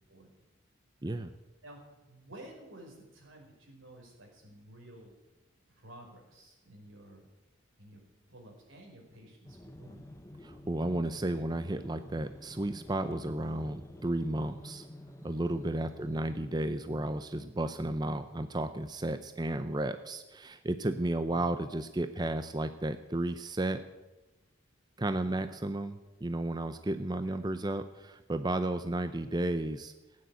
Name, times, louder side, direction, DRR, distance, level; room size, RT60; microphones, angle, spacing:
voice 1, 2.1-5.1 5.8-7.3 7.8-8.0 8.3-10.1 16.0-16.3 21.3-21.6 25.0-25.4 27.2-27.4, right 1 dB, 85° right, -1 dB, 5.3 m, -52 dB
sound 1, 9.4-16.4, left 1 dB, 15° left, 0.8 m, -50 dB
voice 2, 10.4-14.9 15.2-23.8 25.0-29.9, right 1 dB, 20° right, 10 dB, 0.6 m, -33 dB
15.5 x 9.6 x 9.2 m, 1.1 s
head